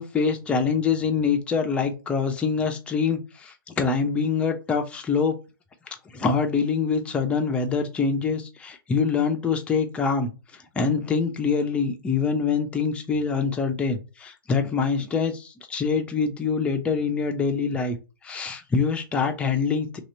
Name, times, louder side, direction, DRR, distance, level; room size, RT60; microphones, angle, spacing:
voice 1, 0.0-5.4 5.9-10.3 10.7-18.0 18.2-20.0, left 5 dB, 10° left, 4 dB, 0.5 m, -25 dB
2.9 x 2.8 x 4.2 m, 0.32 s
hypercardioid pair, 135°, 12 cm